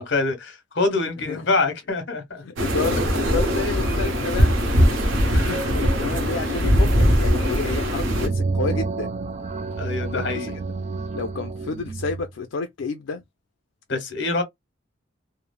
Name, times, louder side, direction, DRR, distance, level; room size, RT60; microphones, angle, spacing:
voice 1, 0.0-2.4 3.0-3.1 5.3-5.7 9.8-10.5 13.9-14.4, left 3 dB, 65° left, 1.0 m, -25 dB
voice 2, 2.4-4.6 5.0-9.1 10.0-10.5 11.1-13.2, left 4 dB, 85° left, 0.4 m, -30 dB
sound 1, 2.6-8.3, equal, 85° right, 0.8 m, -21 dB
sound 2, 7.7-12.3, right 3 dB, 35° right, 0.4 m, -29 dB
3.1 x 2.0 x 2.2 m
head